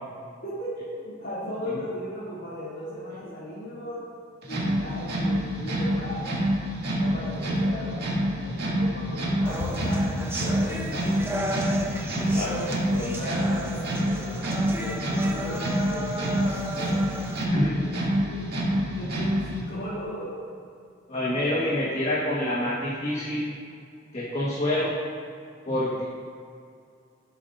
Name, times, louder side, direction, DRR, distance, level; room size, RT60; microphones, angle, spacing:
voice 1, 0.4-4.0 4.5-6.5 6.9-11.5 12.3-17.1 17.5-17.6 18.2-20.4, equal, 60° left, -11 dB, 2.8 m, -37 dB
sound 1, 4.4-19.7, equal, 55° right, 2.2 m, -27 dB
sound 2, 9.5-17.4, right 1 dB, 15° right, 0.7 m, -34 dB
sound 3, 9.6-17.9, left 1 dB, 80° left, 1.1 m, -42 dB
voice 2, 12.2-12.6 17.5-17.8 21.1-23.5 24.1-24.9 25.7-26.0, left 1 dB, 35° left, -6 dB, 1.5 m, -27 dB
17.5 x 8.2 x 2.6 m, 2.3 s
head